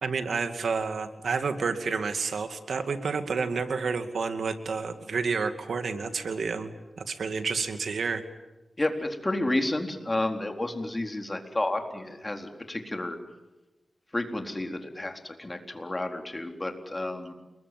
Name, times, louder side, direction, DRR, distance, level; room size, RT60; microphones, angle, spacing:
voice 1, 0.0-6.7 7.0-8.2, right 5 dB, 90° right, 9 dB, 2.4 m, -30 dB
voice 2, 8.8-13.2 14.1-17.3, left 1 dB, 25° left, 5 dB, 4.1 m, -31 dB
29.5 x 21.5 x 9.3 m, 1.0 s
wide cardioid pair, 85°, 0 cm